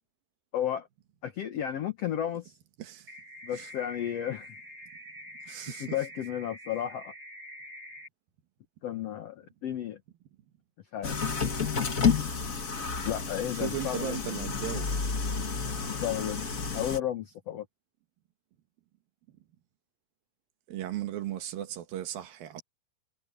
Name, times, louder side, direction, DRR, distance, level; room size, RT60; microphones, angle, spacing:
voice 1, 0.5-0.9 1.2-2.6 3.4-4.5 5.8-7.1 8.8-10.0 10.9-11.2 13.0-14.4 15.9-16.5 16.7-17.6, left 10 dB, 85° left, 1.4 m, -33 dB
voice 2, 2.8-3.1 3.5-3.7 5.5-6.0 13.6-14.9 20.7-22.6, right 12 dB, 70° right, 3.1 m, -36 dB
sound 1, 3.1-8.1, left 1 dB, 25° right, 8.5 m, -46 dB
sound 2, 11.0-17.0, left 5 dB, 50° left, 0.9 m, -30 dB
omnidirectional pair, 4.5 m